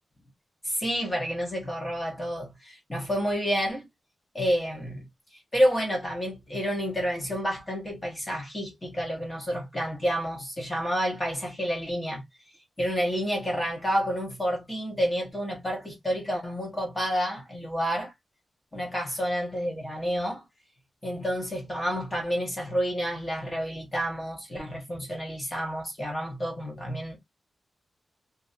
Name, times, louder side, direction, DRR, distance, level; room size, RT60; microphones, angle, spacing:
voice 1, 0.6-3.9 4.3-5.0 5.5-12.2 12.8-18.1 18.7-20.4 21.0-27.2, equal, 15° left, 1.0 m, -29 dB
3.1 x 2.6 x 2.5 m
wide cardioid pair, 175°, 0 cm